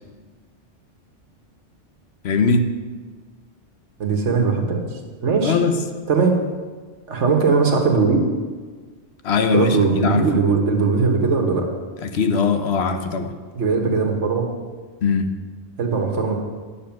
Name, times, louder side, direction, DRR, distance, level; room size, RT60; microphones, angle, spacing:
voice 1, 2.2-2.7 5.4-5.8 9.2-10.2 12.0-13.3 15.0-15.3, left 4 dB, 65° left, 7 dB, 1.0 m, -20 dB
voice 2, 4.0-4.8 5.2-5.6 6.1-6.4 7.1-8.2 9.5-11.7 13.5-14.5 15.8-16.3, right 4 dB, 75° right, 3 dB, 1.6 m, -19 dB
9.9 x 7.0 x 5.9 m, 1.4 s
omnidirectional pair, 1.2 m